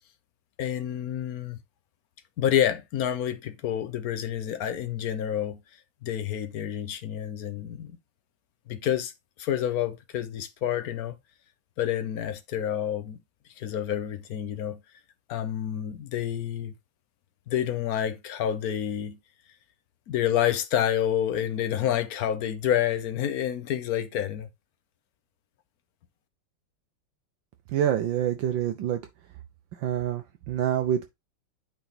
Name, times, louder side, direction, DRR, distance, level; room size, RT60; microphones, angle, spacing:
voice 1, 0.6-1.6 2.4-5.6 6.0-8.0 8.7-9.1 9.4-11.2 11.8-13.2 13.6-14.8 15.3-16.7 17.5-19.2 20.1-24.5, left 10 dB, 65° left, 0.9 m, -28 dB
voice 2, 27.7-29.0 29.8-31.1, right 10 dB, 70° right, 1.3 m, -26 dB
8.9 x 3.5 x 4.1 m
omnidirectional pair, 2.4 m